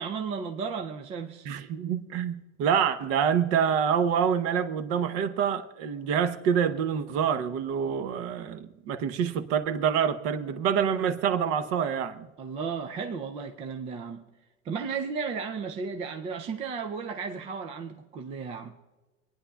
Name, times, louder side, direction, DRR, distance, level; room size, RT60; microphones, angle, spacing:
voice 1, 0.0-1.5 12.4-14.3 14.6-18.7, right 5 dB, 20° right, 0.4 m, -34 dB
voice 2, 1.4-12.3, right 7 dB, 40° right, 0.8 m, -26 dB
25.5 x 9.8 x 2.3 m
supercardioid pair, 145°, 35 cm